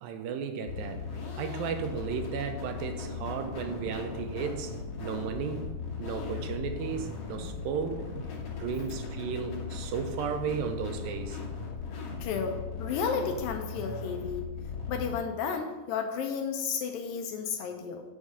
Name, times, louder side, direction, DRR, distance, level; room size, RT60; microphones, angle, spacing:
voice 1, 0.0-1.0 1.4-8.1 8.6-11.4, right 6 dB, 80° right, 7 dB, 2.3 m, -34 dB
sound 1, 0.7-15.2, left 4 dB, 55° left, 1.9 m, -38 dB
voice 2, 12.2-14.4 14.9-18.0, left 6 dB, 80° left, 4 dB, 2.3 m, -32 dB
6.3 x 4.9 x 6.8 m, 1.2 s
omnidirectional pair, 4.2 m